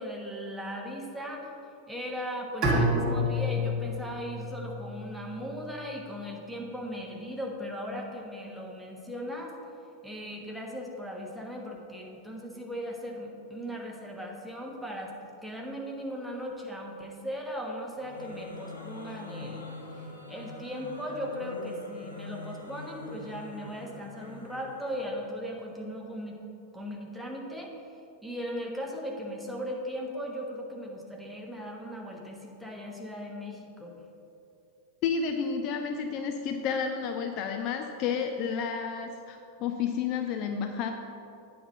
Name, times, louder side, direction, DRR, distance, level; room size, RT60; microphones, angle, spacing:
voice 1, 0.0-1.5 1.9-9.5 10.0-15.1 15.4-19.7 20.0-26.4 26.7-27.7 28.2-33.9, equal, ahead, -1 dB, 1.2 m, -38 dB
Bowed string instrument, 2.6-5.6, left 1 dB, 30° right, 2.1 m, -29 dB
sound 1, 17.9-25.2, left 2 dB, 85° left, 1.0 m, -44 dB
voice 2, 35.0-40.9, left 6 dB, 40° left, 5 dB, 0.5 m, -31 dB
8.6 x 4.3 x 6.2 m, 2.6 s
figure-of-eight pair, 90°, 0 cm